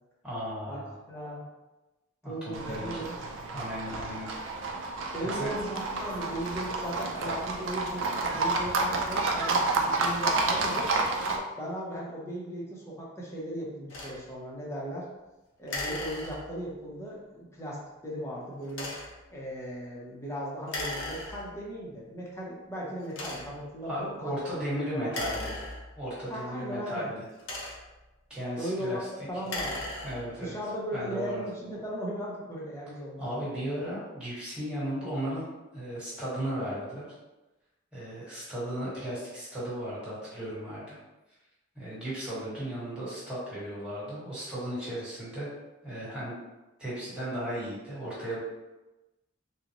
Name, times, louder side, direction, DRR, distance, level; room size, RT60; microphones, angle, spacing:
voice 1, 0.2-0.9 2.2-3.1 3.5-4.3 5.2-5.5 10.5-10.7 23.8-25.5 26.0-27.2 28.3-29.1 30.0-30.6 30.9-31.4 33.2-35.4 35.7-37.0 37.9-41.0 41.7-45.5 45.8-46.3 46.8-48.4, equal, 5° right, -10 dB, 1.3 m, -35 dB
voice 2, 1.1-1.4 2.2-3.2 5.1-10.9 11.6-15.1 15.6-18.9 19.3-24.3 24.7-25.5 26.3-27.1 28.6-29.0 29.3-29.9 30.4-33.5, equal, 15° left, -5 dB, 0.6 m, -37 dB
Livestock farm animals working animals, 2.5-11.4, right 3 dB, 65° right, 0.4 m, -30 dB
sound 1, 13.9-14.2 15.7-16.7 18.7-19.2 20.7-21.7 22.4-22.5 23.1-23.7 25.0-26.2 27.2-28.1 29.3-30.4, left 2 dB, 70° left, 0.7 m, -37 dB
3.8 x 2.1 x 2.9 m, 1.1 s
head